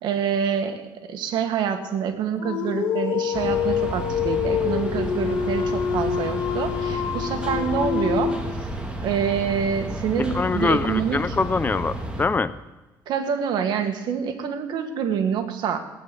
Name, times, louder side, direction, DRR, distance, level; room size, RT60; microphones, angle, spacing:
voice 1, 0.0-8.4 9.0-11.4 13.1-15.8, right 7 dB, 70° right, 6 dB, 1.8 m, -26 dB
Dog, 2.4-8.7, left 8 dB, 80° left, 1.7 m, -26 dB
sound 1, 3.3-12.3, right 1 dB, 10° right, 2.3 m, -32 dB
voice 2, 10.2-12.5, left 4 dB, 25° left, 15 dB, 0.5 m, -24 dB
17.0 x 9.7 x 7.0 m, 1.1 s
cardioid pair, 120°, 8 cm